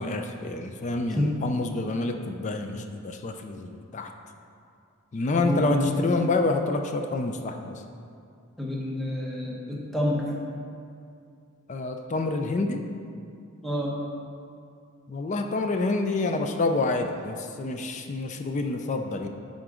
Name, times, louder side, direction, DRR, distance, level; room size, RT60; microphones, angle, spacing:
voice 1, 0.0-4.1 5.1-7.8 11.7-12.8 15.1-19.3, left 2 dB, 35° left, 5 dB, 0.4 m, -28 dB
voice 2, 1.1-1.4 5.3-6.1 8.6-10.3 13.6-14.0, left 1 dB, ahead, -4 dB, 0.9 m, -28 dB
10.5 x 3.8 x 3.7 m, 2.4 s
head